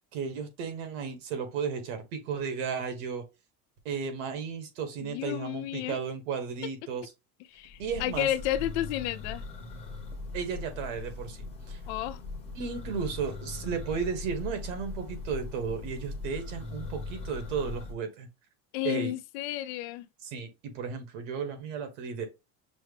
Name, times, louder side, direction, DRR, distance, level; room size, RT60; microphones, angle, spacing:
voice 1, 0.1-3.2 3.8-7.1 7.8-8.3 10.3-11.8 12.5-18.3 18.8-19.1 20.2-22.3, right 6 dB, 80° right, 1.6 m, -34 dB
voice 2, 5.0-6.0 7.5-9.4 11.9-12.2 18.7-20.1, left 13 dB, 60° left, 0.5 m, -32 dB
Church bell, 7.6-17.9, left 3 dB, 15° left, 0.9 m, -40 dB
6.1 x 2.2 x 3.4 m
cardioid pair, 175°, 37 cm